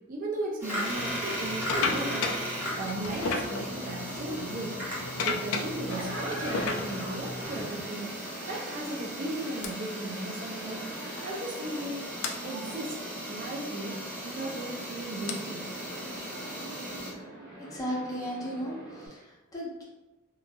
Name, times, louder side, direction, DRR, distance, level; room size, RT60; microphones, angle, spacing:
voice 1, 0.1-4.8 5.2-10.9 11.2-12.1 12.4-13.0 13.3-15.7, right 2 dB, 40° right, -1 dB, 0.4 m, -36 dB
sound 1, 0.6-17.1, equal, 10° right, 1.1 m, -37 dB
sound 2, 0.9-7.7 8.5-8.7 9.6-9.7 11.1-11.2 11.4-11.6 12.2-12.4 14.1-17.3, left 4 dB, 80° left, 0.4 m, -35 dB
sound 3, 5.9-19.1, right 1 dB, 60° right, 0.8 m, -44 dB
voice 2, 17.7-19.8, equal, 15° left, -5 dB, 0.6 m, -35 dB
2.8 x 2.5 x 2.2 m, 1.1 s
head